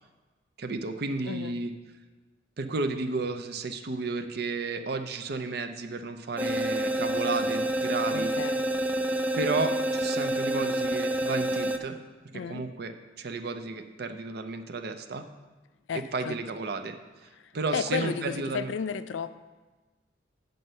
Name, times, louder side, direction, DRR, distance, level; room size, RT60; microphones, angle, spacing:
voice 1, 0.6-1.7 2.6-8.3 9.4-12.0 12.3-15.3 16.1-17.0 17.2-18.7, right 3 dB, 55° right, 8 dB, 0.6 m, -32 dB
voice 2, 1.3-1.6 8.1-8.6 12.3-12.6 15.9-16.3 17.4-19.4, left 6 dB, 85° left, 13 dB, 0.4 m, -33 dB
sound 1, 6.4-11.8, right 1 dB, 10° right, 0.4 m, -28 dB
7.8 x 5.3 x 5.5 m, 1.2 s
head